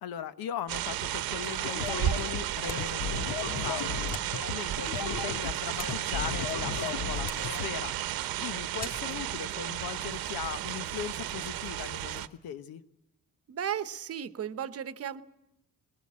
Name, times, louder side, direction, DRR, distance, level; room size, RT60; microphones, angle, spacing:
voice 1, 0.0-12.8, left 9 dB, 90° left, 13 dB, 1.1 m, -39 dB
sound 1, 0.7-12.3, right 12 dB, 85° right, 0.9 m, -33 dB
sound 2, 1.7-7.7, left 7 dB, 60° left, 1.2 m, -35 dB
sound 3, 2.6-3.0 4.1-4.4 5.5-6.4 7.2-7.6 8.8-9.1, left 1 dB, 25° left, 3.1 m, -43 dB
voice 2, 13.5-15.2, right 9 dB, 45° right, 13 dB, 0.9 m, -35 dB
22.0 x 20.0 x 8.6 m, 0.84 s
cardioid pair, 165°, 35 cm